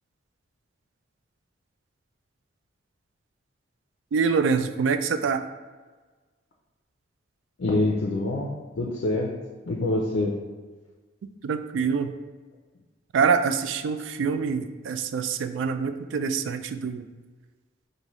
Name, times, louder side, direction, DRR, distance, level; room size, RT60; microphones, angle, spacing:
voice 1, 4.1-5.4 11.4-12.1 13.1-17.0, right 5 dB, 85° right, 10 dB, 0.3 m, -25 dB
voice 2, 7.6-9.3 9.7-10.4, left 2 dB, 75° left, -2 dB, 0.5 m, -26 dB
5.3 x 2.6 x 3.0 m, 1.3 s
head